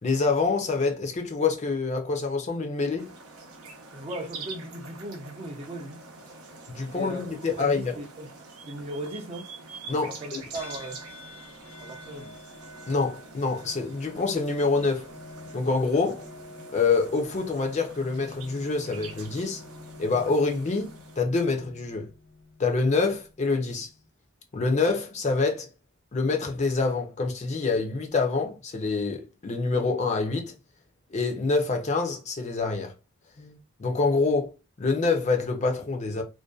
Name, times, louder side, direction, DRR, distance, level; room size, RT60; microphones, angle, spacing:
voice 1, 0.0-3.1 6.7-7.9 9.9-10.4 12.9-15.1 15.5-16.3 16.7-19.6 20.0-22.1 22.6-23.9 24.5-25.7 26.1-30.5 31.1-32.9 33.4-34.5 34.8-36.2, left 4 dB, 30° left, 0.4 m, -26 dB
sound 1, 3.0-21.2, right 4 dB, 85° right, 0.7 m, -46 dB
voice 2, 3.9-6.0 6.8-8.3 8.7-9.5 10.1-11.0 11.8-12.4, right 1 dB, 25° right, 0.4 m, -38 dB
sound 2, 10.5-24.1, left 2 dB, 70° left, 0.9 m, -48 dB
2.6 x 2.2 x 2.2 m
head